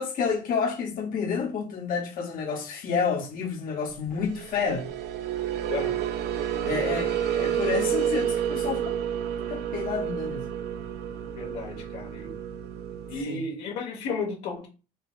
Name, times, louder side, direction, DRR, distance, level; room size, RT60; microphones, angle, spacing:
voice 1, 0.0-4.9 6.6-8.9 9.5-10.5 13.3-13.4, left 5 dB, 55° left, 0.9 m, -29 dB
sound 1, 4.2-13.2, right 9 dB, 75° right, 0.5 m, -30 dB
voice 2, 5.7-6.0 6.6-6.9 11.4-12.3 13.1-14.7, left 4 dB, 90° left, 1.3 m, -34 dB
3.8 x 2.9 x 2.4 m
cardioid pair, 110°, 17 cm